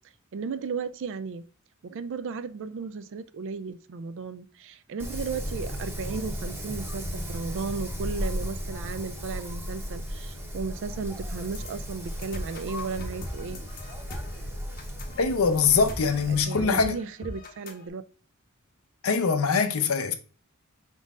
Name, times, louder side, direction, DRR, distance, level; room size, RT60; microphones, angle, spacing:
voice 1, 0.3-1.4 1.8-13.6 16.3-18.0, right 5 dB, 60° right, 0.4 m, -35 dB
Wind, 5.0-16.4, equal, 10° right, 0.8 m, -35 dB
sound 1, 11.5-17.9, left 1 dB, 40° left, 0.8 m, -41 dB
voice 2, 15.2-17.0 19.0-20.1, left 5 dB, 70° left, 0.6 m, -23 dB
5.2 x 3.8 x 2.4 m
head